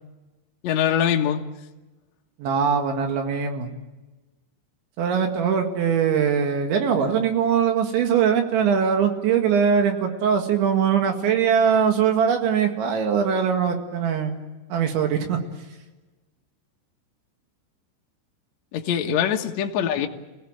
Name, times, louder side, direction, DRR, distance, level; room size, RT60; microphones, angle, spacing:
voice 1, 0.6-1.4 18.7-20.1, left 9 dB, 80° left, 2 dB, 1.5 m, -23 dB
voice 2, 2.4-3.7 5.0-14.4 14.7-15.4 19.1-19.2, right 7 dB, 70° right, 4 dB, 4.3 m, -21 dB
28.0 x 17.5 x 9.0 m, 1.1 s
omnidirectional pair, 5.6 m